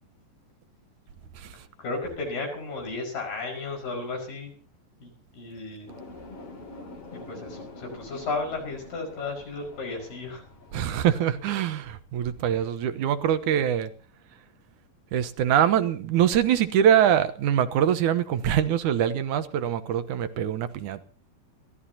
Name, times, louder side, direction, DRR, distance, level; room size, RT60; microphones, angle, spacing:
voice 1, 1.8-4.5 5.0-5.9 7.1-10.4, left 3 dB, 70° left, 7.1 m, -34 dB
sound 1, 5.9-10.9, left 2 dB, 45° left, 3.7 m, -45 dB
voice 2, 10.7-13.9 15.1-21.0, right 10 dB, 70° right, 2.3 m, -24 dB
30.0 x 13.5 x 2.9 m
omnidirectional pair, 4.0 m